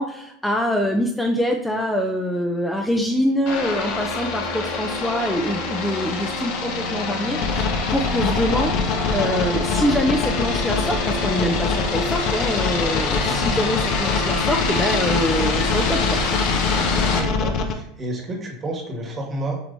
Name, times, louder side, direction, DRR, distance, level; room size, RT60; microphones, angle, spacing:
voice 1, 0.0-8.7 9.1-16.2, equal, 5° left, 1 dB, 0.5 m, -24 dB
sound 1, 3.5-17.2, left 4 dB, 65° left, 1.0 m, -25 dB
sound 2, 7.4-17.7, left 5 dB, 50° left, 0.6 m, -24 dB
voice 2, 17.1-19.6, right 1 dB, 30° right, 1 dB, 1.4 m, -30 dB
6.8 x 2.9 x 2.6 m, 0.78 s
hypercardioid pair, 100°, 0 cm